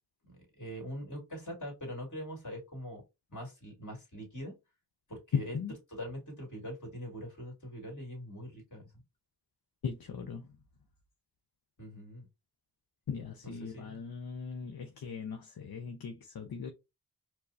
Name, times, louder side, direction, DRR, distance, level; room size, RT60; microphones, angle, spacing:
voice 1, 0.3-3.0 3.3-4.5 5.1-5.6 6.0-8.8 11.8-12.3 13.6-14.0, equal, 50° left, 2.0 m, -43 dB
voice 2, 5.3-5.7 9.8-10.6 13.1-16.7, left 6 dB, 65° left, 0.6 m, -38 dB
4.5 x 2.1 x 2.7 m
cardioid pair, 40°, 39 cm